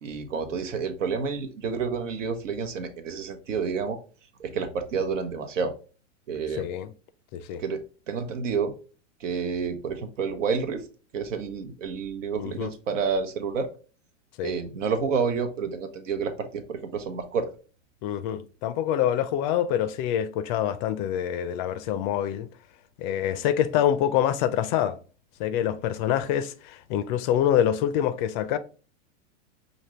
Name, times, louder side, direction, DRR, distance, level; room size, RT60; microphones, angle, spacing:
voice 1, 0.0-4.0 4.4-5.7 6.3-6.7 7.6-8.7 9.2-10.9 11.1-13.7 14.4-17.5, right 5 dB, 80° right, 0.9 m, -29 dB
voice 2, 6.6-6.9 7.3-7.6 12.4-12.7 14.4-14.5 18.0-22.5 23.0-25.0 25.4-28.6, left 10 dB, 40° left, 0.4 m, -26 dB
5.1 x 2.6 x 3.0 m
hypercardioid pair, 115°, 37 cm